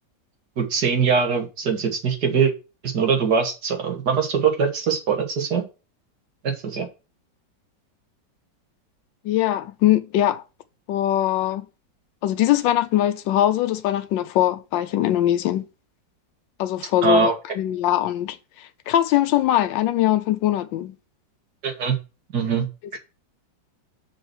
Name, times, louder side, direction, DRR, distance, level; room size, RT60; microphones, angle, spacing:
voice 1, 0.6-2.5 2.8-5.6 6.4-6.9 17.0-17.3 21.6-22.0 22.3-22.7 22.9-23.0, right 5 dB, 60° right, 2.3 m, -22 dB
voice 2, 9.2-10.4 10.9-11.7 12.2-15.6 16.6-20.9, left 12 dB, 85° left, 1.3 m, -22 dB
6.3 x 4.6 x 6.0 m
omnidirectional pair, 2.0 m